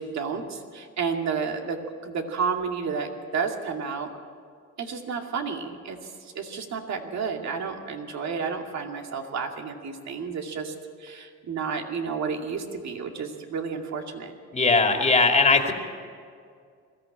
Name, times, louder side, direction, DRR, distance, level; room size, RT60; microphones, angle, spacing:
voice 1, 0.0-4.1 4.8-10.7 11.0-14.3, right 5 dB, 65° right, 3 dB, 2.5 m, -31 dB
voice 2, 14.5-15.7, left 3 dB, 25° left, 3 dB, 2.5 m, -19 dB
21.0 x 14.5 x 8.8 m, 2.2 s
cardioid pair, 90°, 30 cm